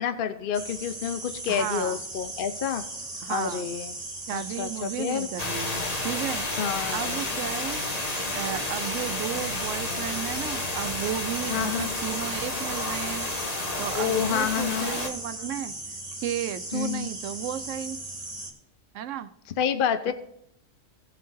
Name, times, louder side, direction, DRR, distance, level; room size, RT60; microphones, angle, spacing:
voice 1, 0.0-2.8 3.3-4.0 4.3-5.3 6.6-7.2 11.5-11.9 13.9-14.9 16.7-17.1 19.6-20.1, left 8 dB, 55° left, 10 dB, 0.6 m, -28 dB
sound 1, 0.5-18.5, right 2 dB, 30° right, 1.8 m, -38 dB
voice 2, 1.5-2.0 3.2-3.7 4.3-6.4 6.9-7.8 8.3-13.3 13.8-15.7 16.2-18.0 18.9-19.3 20.1-20.2, right 10 dB, 75° right, 12 dB, 0.9 m, -33 dB
sound 2, 5.4-15.1, left 2 dB, 30° left, 1.1 m, -31 dB
16.5 x 7.4 x 2.6 m, 0.79 s
omnidirectional pair, 1.4 m